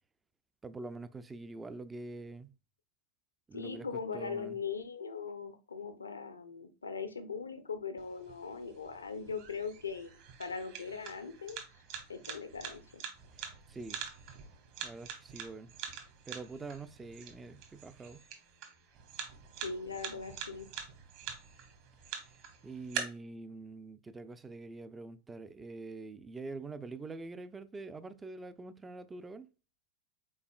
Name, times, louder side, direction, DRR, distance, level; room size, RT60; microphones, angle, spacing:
voice 1, 0.6-2.5 3.5-3.9 4.1-4.6 13.4-14.0 14.8-15.7 16.3-18.2 22.6-29.5, right 3 dB, 15° right, 0.4 m, -45 dB
voice 2, 3.5-10.1 10.4-11.6 12.1-13.0 19.6-20.7, left 5 dB, 75° left, 0.7 m, -40 dB
sound 1, 8.0-23.0, right 8 dB, 45° right, 1.2 m, -46 dB
5.5 x 4.1 x 2.3 m
figure-of-eight pair, 90°, 0 cm